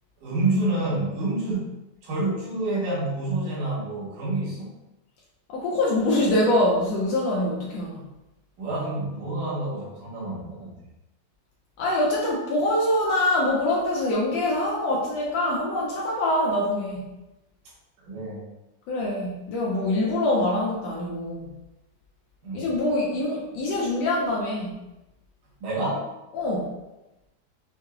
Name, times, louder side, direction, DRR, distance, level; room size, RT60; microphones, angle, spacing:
voice 1, 0.2-1.7 2.0-4.7 8.6-10.7 18.1-18.4 22.4-22.7 25.6-26.1, right 2 dB, 90° right, -6 dB, 2.8 m, -28 dB
voice 2, 5.5-8.0 11.8-17.1 18.9-21.5 22.5-24.8 26.3-26.7, left 1 dB, 75° left, -3 dB, 1.6 m, -24 dB
6.5 x 2.8 x 2.4 m, 0.96 s
omnidirectional pair, 3.5 m